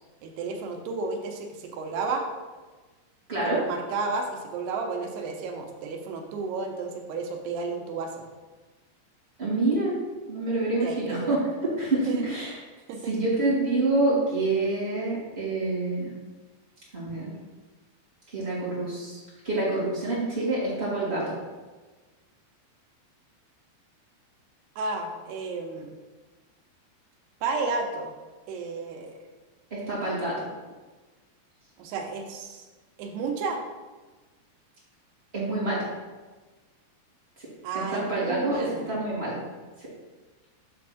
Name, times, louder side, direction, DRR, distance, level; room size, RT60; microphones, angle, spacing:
voice 1, 0.2-2.3 3.4-8.3 10.8-11.4 12.1-12.2 12.9-13.1 24.8-26.0 27.4-28.1 28.5-29.1 31.8-32.7 33.0-33.6 37.6-38.9, right 4 dB, 85° right, 3 dB, 2.8 m, -32 dB
voice 2, 9.4-9.9 10.3-11.4 11.8-12.6 13.1-16.1 16.9-17.3 18.3-21.3 29.7-30.4 35.3-35.9 37.9-39.4, right 2 dB, 20° right, -8 dB, 1.8 m, -27 dB
7.6 x 3.5 x 6.4 m, 1.3 s
omnidirectional pair, 4.8 m